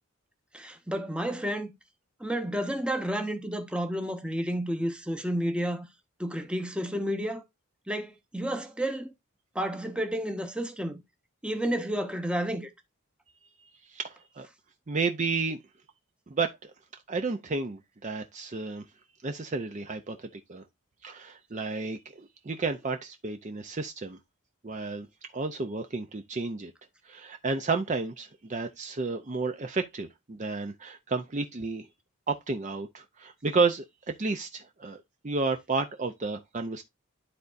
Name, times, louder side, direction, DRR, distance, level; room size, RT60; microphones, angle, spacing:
voice 1, 0.5-1.7 2.2-5.9 6.2-7.4 7.9-9.1 9.5-11.0 11.4-12.7, equal, 5° right, 0.8 m, -31 dB
voice 2, 13.9-14.5 14.9-15.6 16.3-16.7 17.1-18.8 19.2-20.6 21.0-24.2 24.6-25.1 25.3-26.7 27.0-31.9 32.3-36.8, right 4 dB, 35° right, 0.5 m, -32 dB
12.0 x 4.0 x 2.6 m
head